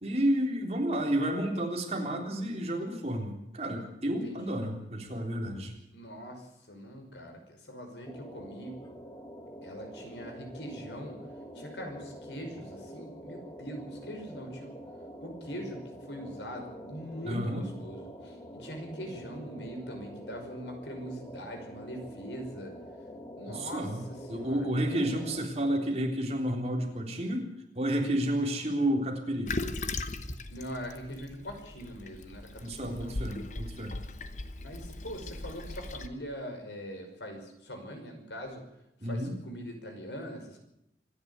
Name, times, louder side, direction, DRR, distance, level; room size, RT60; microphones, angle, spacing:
voice 1, 0.0-5.7 17.3-17.6 23.5-24.0 24.3-27.5 27.8-29.5 32.6-34.0 39.0-39.3, right 1 dB, 35° right, 1 dB, 3.6 m, -31 dB
voice 2, 4.2-4.6 5.9-8.8 9.6-11.2 11.5-14.8 15.2-22.7 23.4-25.0 30.5-33.2 34.6-38.6 39.0-40.6, equal, 85° left, 4 dB, 5.7 m, -42 dB
sound 1, 8.1-25.4, equal, 20° left, 1.7 m, -46 dB
Toilet flush, 29.5-36.1, left 2 dB, 45° left, 1.2 m, -38 dB
25.5 x 10.5 x 9.6 m, 0.82 s
head